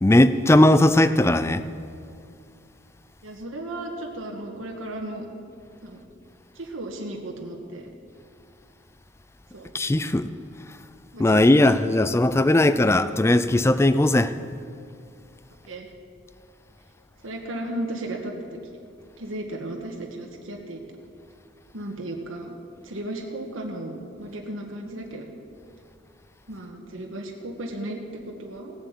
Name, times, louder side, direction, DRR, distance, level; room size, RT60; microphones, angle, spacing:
voice 1, 0.0-1.6 9.7-10.3 11.2-14.3, left 1 dB, 15° left, 13 dB, 0.4 m, -18 dB
voice 2, 3.2-5.3 5.8-6.0 6.5-7.9 9.5-9.7 11.1-11.4 11.7-12.0 15.6-15.9 17.2-18.6 19.2-20.8 21.7-22.5 22.8-25.2 26.5-28.7, right 1 dB, 85° right, 1 dB, 1.5 m, -35 dB
16.5 x 7.6 x 8.2 m, 2.4 s
head